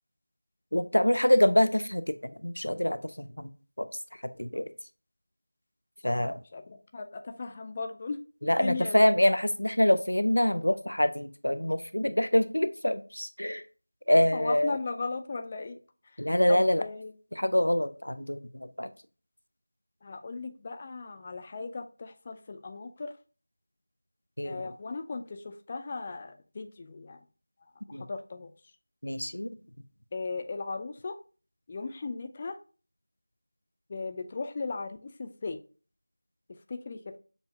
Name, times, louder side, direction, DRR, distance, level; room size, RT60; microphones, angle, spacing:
voice 1, 0.7-3.5 3.8-3.9 4.4-4.7 6.0-6.4 8.4-13.6 14.1-14.7 16.2-16.8 17.4-18.9 24.4-24.6 27.9-28.1 29.0-29.6, left 1 dB, 85° left, 12 dB, 0.5 m, -25 dB
voice 2, 6.0-8.2 8.6-9.0 14.3-15.8 16.0-16.2 16.5-17.1 20.0-23.1 24.4-27.2 27.6-28.5 30.1-31.2 31.7-32.6 33.9-35.6 36.5-37.2, left 4 dB, 20° left, 6 dB, 0.3 m, -37 dB
6.8 x 2.6 x 2.3 m, 0.36 s
figure-of-eight pair, 170°, 0 cm